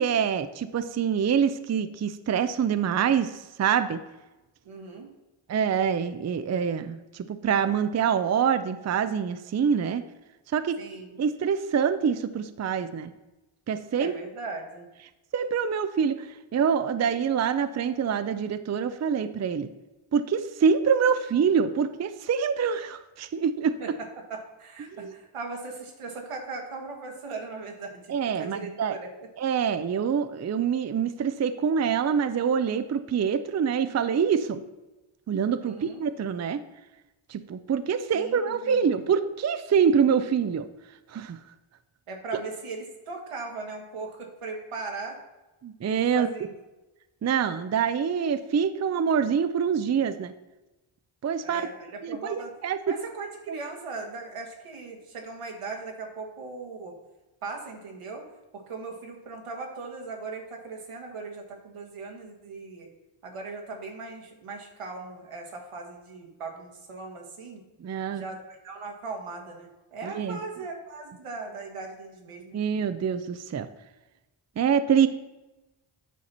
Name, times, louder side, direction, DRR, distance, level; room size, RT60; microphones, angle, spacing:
voice 1, 0.0-4.0 5.5-10.0 10.5-10.8 11.2-13.1 13.7-14.1 15.3-16.3 16.5-19.7 20.1-23.8 25.0-25.1 28.1-29.0 29.4-34.6 35.3-36.6 37.3-40.7 41.1-41.4 45.6-46.3 47.2-50.3 51.2-51.7 52.0-53.0 53.5-53.6 67.8-68.2 70.0-70.4 72.5-73.7 74.6-75.1, right 7 dB, 35° right, 11 dB, 0.5 m, -25 dB
voice 2, 4.6-5.1 10.8-11.2 14.0-14.9 23.8-23.9 24.3-28.1 28.4-29.1 35.6-36.0 38.1-39.1 42.1-45.2 45.9-46.5 51.4-52.5 52.9-57.0 57.4-58.2 58.5-62.9 63.2-67.6 68.1-72.6, right 3 dB, 90° right, 2 dB, 1.7 m, -39 dB
9.1 x 5.8 x 4.3 m, 1.1 s
cardioid pair, 85°, 50 cm